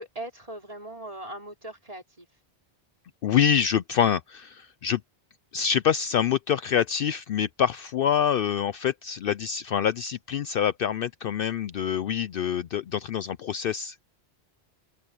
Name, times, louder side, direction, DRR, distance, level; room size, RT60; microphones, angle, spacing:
voice 1, 0.0-2.3, right 1 dB, 35° right, 5.2 m, -39 dB
voice 2, 3.2-5.0 5.5-14.0, left 8 dB, 65° left, 0.7 m, -26 dB
open air
omnidirectional pair, 1.1 m